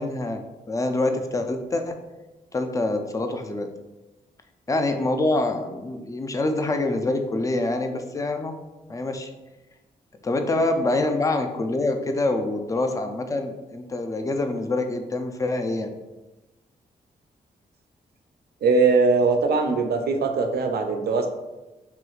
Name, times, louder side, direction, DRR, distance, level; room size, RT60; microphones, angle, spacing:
voice 1, 0.0-2.0 2.5-3.7 4.7-8.5 8.9-9.3 10.2-15.9, left 2 dB, 20° left, 5 dB, 0.4 m, -25 dB
voice 2, 18.6-21.3, right 4 dB, 65° right, 5 dB, 0.4 m, -21 dB
3.0 x 2.8 x 2.4 m, 1.1 s
supercardioid pair, 45°, 18 cm